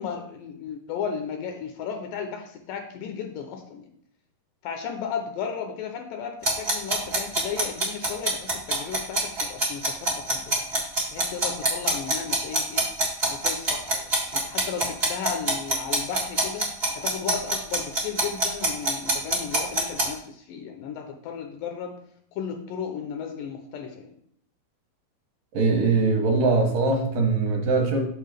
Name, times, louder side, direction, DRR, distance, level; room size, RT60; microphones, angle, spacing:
voice 1, 0.0-3.9 4.6-10.5 11.1-12.9 13.3-16.7 16.9-22.0 22.4-24.2, left 7 dB, 80° left, 5 dB, 2.0 m, -34 dB
sound 1, 6.4-20.1, right 2 dB, 55° right, 0.6 m, -24 dB
voice 2, 25.5-28.0, right 3 dB, 75° right, 1 dB, 2.3 m, -22 dB
6.5 x 5.8 x 3.3 m, 0.66 s
omnidirectional pair, 4.3 m